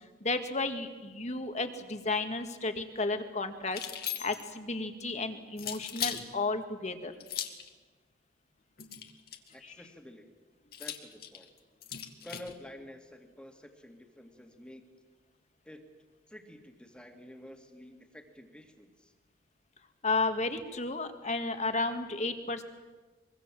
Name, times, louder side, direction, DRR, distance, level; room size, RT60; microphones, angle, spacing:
voice 1, 0.2-7.2 9.6-9.7 20.0-22.6, left 3 dB, 40° left, 7 dB, 2.0 m, -33 dB
sound 1, 3.7-4.6 5.6-6.2 7.2-7.7 8.8-9.5 10.7-12.5, left 10 dB, 60° left, 1.9 m, -38 dB
voice 2, 9.5-10.3 10.8-11.5 12.2-14.9 15.6-15.9 16.3-19.1, left 1 dB, 5° left, 4 dB, 2.3 m, -50 dB
24.0 x 23.0 x 7.6 m, 1.3 s
head